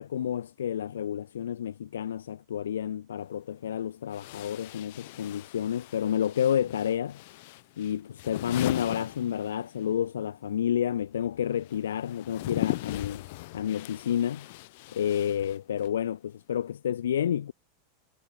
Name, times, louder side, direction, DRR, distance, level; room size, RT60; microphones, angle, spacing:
voice 1, 0.0-7.1 7.8-13.2 13.5-14.5 14.9-17.5, left 9 dB, 75° left, 0.8 m, -30 dB
sound 1, 3.2-3.3 4.1-9.9 10.2-16.0, left 22 dB, 60° left, 1.9 m, -39 dB
hypercardioid pair, 90°, 0 cm